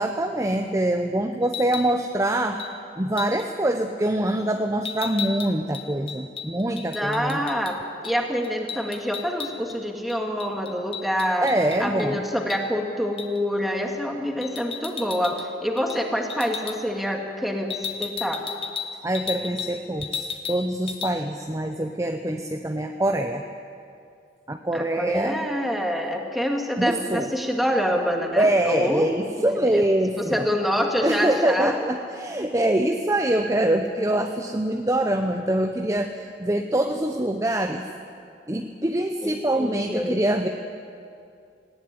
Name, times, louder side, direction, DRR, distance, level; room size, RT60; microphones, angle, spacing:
voice 1, 0.0-2.6 3.0-7.4 11.4-12.2 19.0-23.4 24.5-25.4 26.8-27.3 28.4-30.5 31.0-36.1 36.4-37.9 38.5-40.5, right 1 dB, 15° right, 5 dB, 0.8 m, -24 dB
sound 1, 1.4-1.9 2.6-2.7 3.2-3.5 4.8-7.7 8.0-8.2 8.4-9.8 10.1-12.1 12.5-12.6 13.2-13.4 14.4-15.5 15.8-16.0 16.3-16.8 17.7-19.7 20.0-20.6 20.9-21.1, left 6 dB, 30° left, 1.4 m, -34 dB
voice 2, 6.9-7.8 8.0-11.5 11.8-18.4 24.7-29.1 29.4-29.8 30.3-31.8 39.2-40.2, equal, ahead, 1 dB, 2.1 m, -26 dB
18.5 x 17.0 x 9.8 m, 2.4 s
head